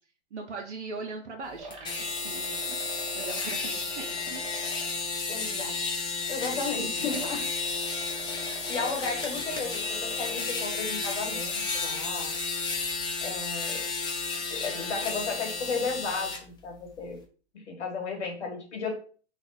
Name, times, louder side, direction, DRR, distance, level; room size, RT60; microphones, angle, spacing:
voice 1, 0.3-2.8 3.1-4.4 6.5-7.1, right 4 dB, 90° right, 2 dB, 0.9 m, -40 dB
sound 1, 1.6-5.0 5.5-10.6 11.1-11.2, right 2 dB, 15° right, 1.1 m, -44 dB
sound 2, 1.7-16.4, left 4 dB, 15° left, 0.7 m, -32 dB
voice 2, 5.3-5.8 6.3-7.4 8.4-12.3 13.2-13.8 14.5-17.2 17.5-18.9, left 4 dB, 80° left, 1 dB, 1.9 m, -34 dB
3.3 x 2.4 x 4.1 m, 0.41 s
hypercardioid pair, 125°, 34 cm